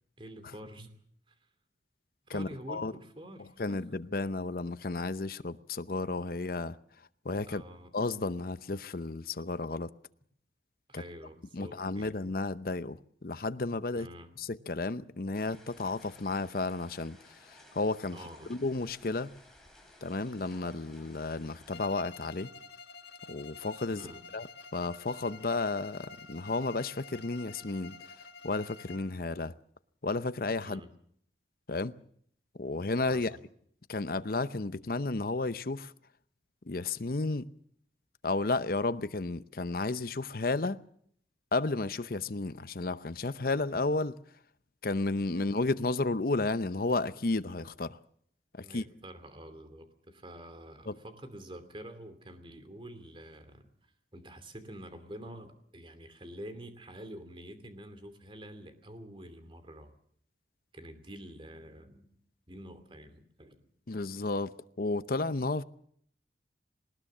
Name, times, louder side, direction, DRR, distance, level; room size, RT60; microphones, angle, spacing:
voice 1, 0.2-0.9 1.3-1.4 2.2-3.9 7.5-7.9 10.9-12.1 13.9-14.3 18.1-18.6 23.9-24.2 30.6-30.9 33.1-33.4 45.3-45.4 48.6-59.9 60.7-62.1 62.5-63.6, right 1 dB, 30° right, 2.7 m, -47 dB
voice 2, 2.3-2.9 3.6-6.8 7.2-7.6 7.9-9.9 10.9-11.0 11.5-14.1 14.4-17.2 17.7-18.2 18.5-19.3 20.0-22.5 23.3-24.0 24.3-24.5 24.7-28.0 28.4-29.5 30.0-30.8 31.7-31.9 32.6-33.3 33.9-35.9 36.7-37.4 38.2-40.8 41.5-44.2 44.8-48.0 48.7-48.8 50.9-51.0 63.9-65.6, left 3 dB, 55° left, 0.8 m, -32 dB
sound 1, 15.3-21.8, left 1 dB, ahead, 4.5 m, -57 dB
Bowed string instrument, 21.7-29.2, left 4 dB, 75° left, 1.8 m, -49 dB
20.0 x 19.5 x 7.4 m
head